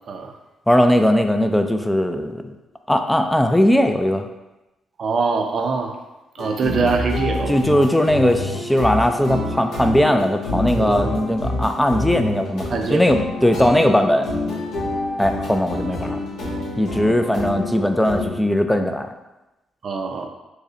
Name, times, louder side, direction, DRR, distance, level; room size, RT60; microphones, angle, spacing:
voice 1, 0.7-2.5 2.9-4.3 7.5-14.3 15.2-16.2 16.8-19.1, left 1 dB, 5° left, 6 dB, 0.3 m, -19 dB
voice 2, 5.0-5.9 6.4-7.6 10.8-11.1 12.7-13.0 19.8-20.3, right 4 dB, 50° right, 3 dB, 0.5 m, -23 dB
sound 1, 6.4-18.3, left 1 dB, 80° left, 1.2 m, -27 dB
4.7 x 2.1 x 2.8 m, 1.0 s
cardioid pair, 90°, 0 cm